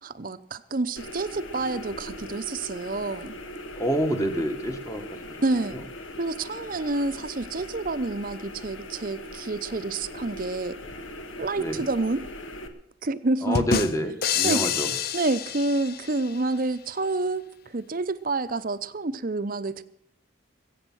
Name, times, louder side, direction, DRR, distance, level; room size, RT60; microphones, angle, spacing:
voice 1, 0.0-3.3 5.4-5.8 6.2-10.8 11.4-12.3 13.0-13.8 14.4-14.7 15.1-19.8, right 2 dB, 45° right, 13 dB, 0.7 m, -28 dB
sound 1, 1.0-12.7, left 1 dB, 75° left, 1.6 m, -40 dB
voice 2, 3.8-5.4 5.7-5.8 11.6-11.8 13.4-14.9, equal, 15° left, 6 dB, 1.5 m, -28 dB
sound 2, 13.5-16.4, left 7 dB, 45° left, 0.6 m, -28 dB
21.0 x 8.6 x 6.2 m, 0.73 s
head